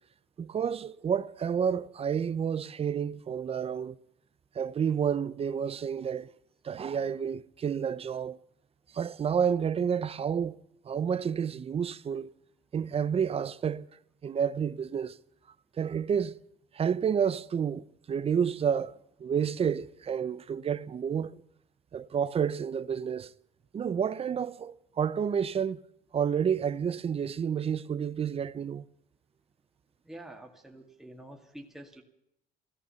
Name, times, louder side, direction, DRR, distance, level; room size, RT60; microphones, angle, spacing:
voice 1, 0.4-4.0 4.5-6.3 6.6-8.4 8.9-10.6 10.8-12.3 12.7-13.9 14.2-15.2 15.8-16.4 16.7-21.4 21.9-23.3 23.7-25.8 26.1-28.8, right 7 dB, 35° right, 0.7 m, -30 dB
voice 2, 30.1-32.0, right 1 dB, ahead, 2.1 m, -47 dB
15.0 x 14.0 x 7.0 m
cardioid pair, 110°, 17 cm